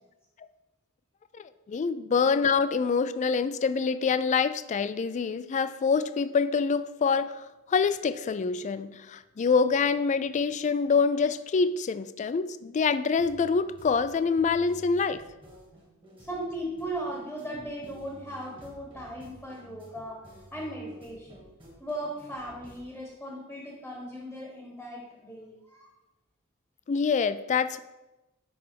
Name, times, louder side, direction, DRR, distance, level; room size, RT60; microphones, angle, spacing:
voice 1, 1.3-15.2 26.9-27.8, left 5 dB, 35° left, 13 dB, 0.3 m, -26 dB
sound 1, 13.2-22.8, equal, 25° right, 1.6 m, -52 dB
voice 2, 16.2-21.4 21.8-25.9, right 1 dB, 5° left, -1 dB, 1.1 m, -38 dB
10.0 x 3.4 x 5.1 m, 1.0 s
head